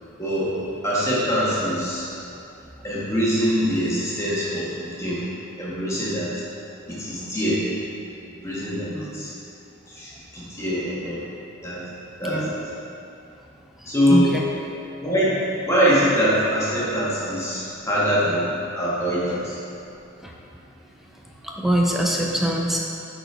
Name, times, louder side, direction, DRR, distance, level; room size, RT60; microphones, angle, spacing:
voice 1, 0.2-0.5 0.8-2.0 2.8-5.3 5.6-6.4 6.9-7.6 8.3-9.3 9.9-11.2 11.6-11.9 12.2-12.5 13.8-14.3 15.0-15.4 15.7-18.5 18.7-19.6, equal, 15° left, -8 dB, 1.6 m, -23 dB
voice 2, 14.1-14.4 20.2-20.3 21.4-22.8, right 1 dB, ahead, -2 dB, 0.5 m, -23 dB
8.9 x 4.4 x 3.3 m, 2.6 s
head